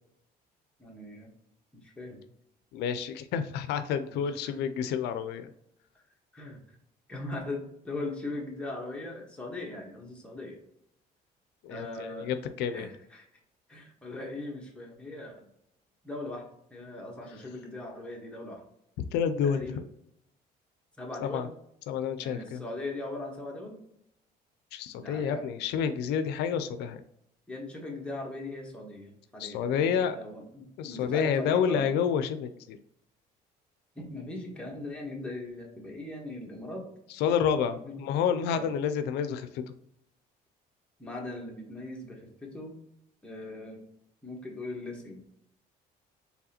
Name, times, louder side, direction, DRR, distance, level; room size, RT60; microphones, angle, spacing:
voice 1, 0.8-1.3 1.8-2.2 4.1-4.6 6.3-6.6 7.1-10.6 11.7-12.3 12.7-13.3 13.7-15.5 16.0-18.6 19.4-19.8 21.0-21.5 22.2-23.8 24.9-25.6 27.5-31.9 33.9-36.9 37.8-38.0 38.5-38.7 41.0-42.8 43.2-43.9 44.2-45.2, left 2 dB, 5° left, -2 dB, 1.3 m, -39 dB
voice 2, 2.7-5.5 11.6-12.9 19.1-19.7 21.2-21.5 21.9-22.6 24.7-27.0 29.4-30.2 30.8-32.8 37.1-39.8, left 7 dB, 85° left, 10 dB, 0.4 m, -29 dB
4.7 x 3.4 x 2.9 m, 0.75 s
cardioid pair, 110°, 17 cm